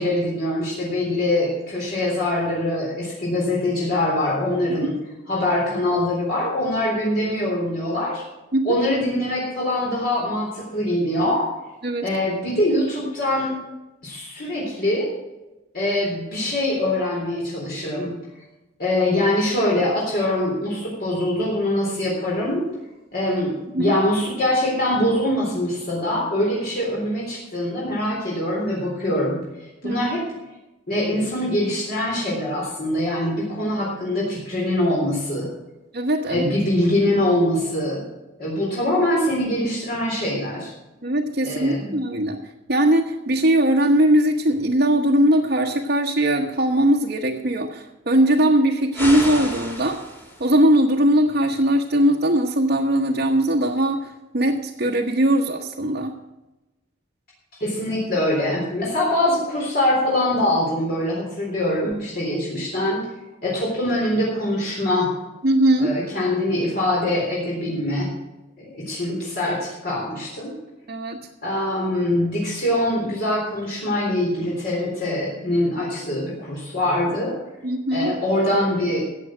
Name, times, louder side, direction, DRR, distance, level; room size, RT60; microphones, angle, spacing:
voice 1, 0.0-5.0 5.3-8.2 8.6-11.5 12.0-13.5 14.0-15.1 15.7-18.1 18.8-22.7 23.1-29.4 29.8-30.3 30.9-35.5 36.3-38.0 38.4-40.7 41.4-42.0 57.6-63.0 63.4-65.1 65.8-68.1 68.6-70.5 71.4-77.4 77.9-79.0, left 1 dB, 50° left, -5 dB, 3.8 m, -23 dB
voice 2, 35.9-36.4 41.0-50.0 50.4-56.2 65.4-65.9 70.9-71.2 77.6-78.2, right 1 dB, 50° right, -1 dB, 1.0 m, -20 dB
sound 1, 48.9-50.5, left 1 dB, 10° left, 2.0 m, -31 dB
14.5 x 8.5 x 6.2 m, 1.0 s
head